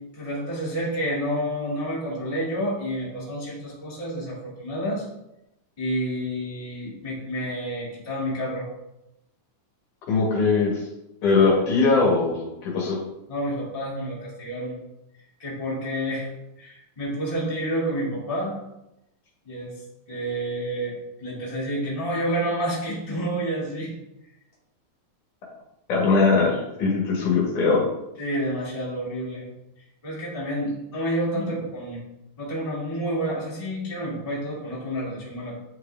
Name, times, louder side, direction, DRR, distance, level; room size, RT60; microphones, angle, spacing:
voice 1, 0.1-5.0 5.8-8.7 11.4-11.5 13.3-14.7 15.4-16.3 16.6-18.5 19.4-19.7 20.1-23.9 28.2-29.4 30.0-32.0 32.4-35.5, equal, 10° left, -7 dB, 2.4 m, -29 dB
voice 2, 10.1-10.7 11.2-13.0 25.9-27.8, left 4 dB, 70° left, -4 dB, 3.3 m, -20 dB
10.5 x 4.9 x 3.5 m, 0.90 s
omnidirectional pair, 3.7 m